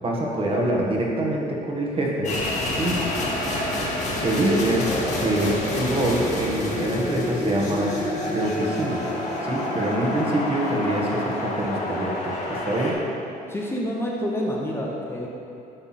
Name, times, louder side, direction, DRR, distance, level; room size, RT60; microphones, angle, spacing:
voice 1, 0.0-2.4 2.8-3.0 4.2-4.9 5.2-8.0 8.3-9.1 9.4-13.0, right 1 dB, 35° right, -2 dB, 1.4 m, -25 dB
sound 1, 2.2-12.9, left 1 dB, 45° left, 1.7 m, -28 dB
voice 2, 13.5-15.3, equal, 15° left, -3 dB, 0.9 m, -28 dB
10.0 x 3.5 x 5.8 m, 2.7 s
cardioid pair, 110°, 17 cm